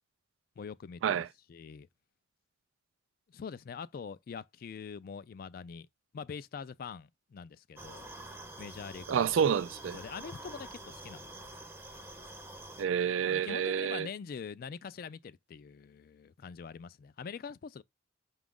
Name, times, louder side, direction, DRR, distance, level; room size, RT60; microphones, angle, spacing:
voice 1, 0.6-1.9 3.3-5.9 6.1-8.1 8.6-9.3 9.9-11.3 13.2-17.8, left 6 dB, 50° left, 0.3 m, -44 dB
sound 1, 7.8-12.8, right 1 dB, 10° right, 0.6 m, -47 dB
voice 2, 9.1-10.0 12.8-14.1, right 8 dB, 85° right, 0.3 m, -29 dB
6.0 x 2.4 x 3.6 m
head